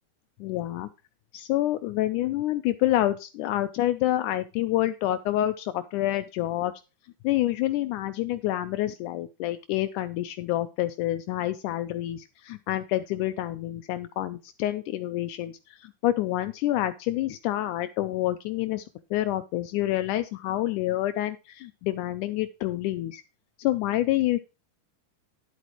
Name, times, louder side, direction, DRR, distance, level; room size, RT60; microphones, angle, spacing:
voice 1, 0.4-0.9 1.3-6.7 7.2-18.8 19.1-23.2 23.6-24.4, left 14 dB, 80° left, 10 dB, 2.0 m, -28 dB
11.0 x 8.2 x 3.0 m, 0.29 s
omnidirectional pair, 3.7 m